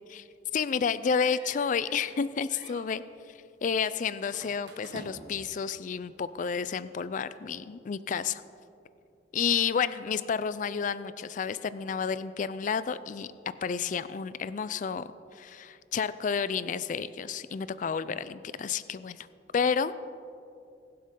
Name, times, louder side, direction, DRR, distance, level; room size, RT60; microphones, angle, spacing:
voice 1, 0.5-3.0 3.6-8.4 9.3-13.3 13.6-15.1 15.4-19.3 19.5-20.0, left 6 dB, 45° left, 15 dB, 0.4 m, -30 dB
sound 1, 1.0-2.2 2.5-2.9 4.3-5.5, right 2 dB, 65° right, 1.6 m, -48 dB
21.5 x 7.7 x 3.7 m, 2.6 s
head